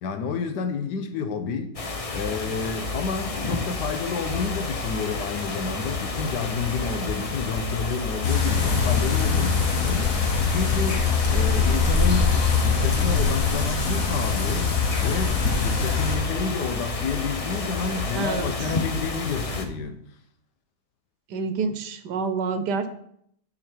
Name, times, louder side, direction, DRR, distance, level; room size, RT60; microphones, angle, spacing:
voice 1, 0.0-1.7 2.1-11.1 11.3-20.0, left 5 dB, 90° left, 1.5 m, -30 dB
sound 1, 1.7-19.6, left 3 dB, 40° left, 0.5 m, -30 dB
sound 2, 8.2-16.2, left 5 dB, 55° left, 1.6 m, -23 dB
voice 2, 18.1-18.5 21.3-22.9, right 5 dB, 80° right, 1.4 m, -27 dB
9.7 x 5.8 x 4.4 m
omnidirectional pair, 1.8 m